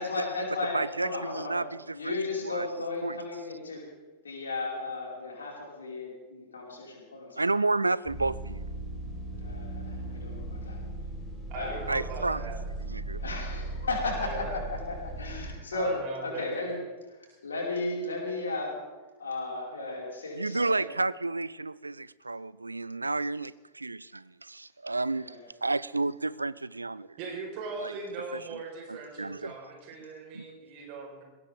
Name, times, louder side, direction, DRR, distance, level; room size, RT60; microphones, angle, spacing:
voice 1, 0.0-1.6 1.9-3.8 4.2-7.4 9.4-10.8 11.5-11.8 13.1-15.9 16.2-16.8 17.1-18.8 19.2-20.9 25.1-25.5, left 3 dB, 70° left, -3 dB, 5.3 m, -35 dB
voice 2, 0.7-2.7 3.0-3.2 7.4-8.6 11.9-12.4 12.8-13.2 20.3-25.4 25.6-27.2 27.8-27.9 28.3-28.6 28.9-29.5 30.3-30.5, right 3 dB, 80° right, 20 dB, 0.4 m, -31 dB
sound 1, 8.1-15.6, right 2 dB, 20° left, 5.6 m, -37 dB
voice 3, 11.5-12.6 14.2-14.6 15.7-16.5 27.2-31.2, right 4 dB, 45° right, 1 dB, 4.8 m, -39 dB
21.0 x 17.5 x 3.7 m, 1.2 s
figure-of-eight pair, 90°, 0 cm